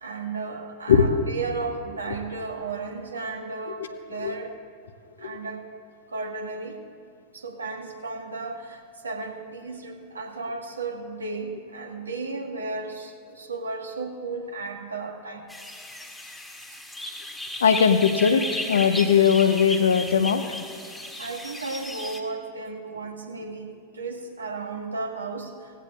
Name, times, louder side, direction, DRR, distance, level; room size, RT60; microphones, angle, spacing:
voice 1, 0.0-4.5 5.2-5.6 6.1-6.8 7.3-15.5 21.2-23.7 23.9-25.5, right 3 dB, 75° right, 2 dB, 1.5 m, -34 dB
voice 2, 0.9-1.2 4.2-4.3 5.2-5.4 17.6-20.4, left 7 dB, 65° left, 9 dB, 0.8 m, -20 dB
sound 1, 15.5-22.2, left 1 dB, 5° left, 1.6 m, -35 dB
18.0 x 15.5 x 2.4 m, 2.3 s
figure-of-eight pair, 90°, 0 cm